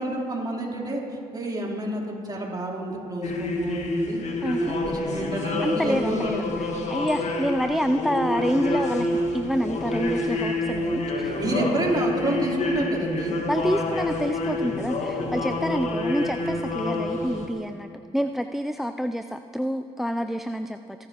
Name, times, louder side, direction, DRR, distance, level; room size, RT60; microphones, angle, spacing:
voice 1, 0.0-4.2 4.6-6.5 11.4-13.4, right 1 dB, 30° right, -2 dB, 3.6 m, -29 dB
sound 1, 3.2-17.5, left 2 dB, 55° left, 1.7 m, -28 dB
voice 2, 4.4-4.8 5.6-11.4 13.5-21.1, equal, ahead, 9 dB, 0.4 m, -28 dB
28.0 x 9.7 x 3.0 m, 2.4 s
hypercardioid pair, 60°, 14 cm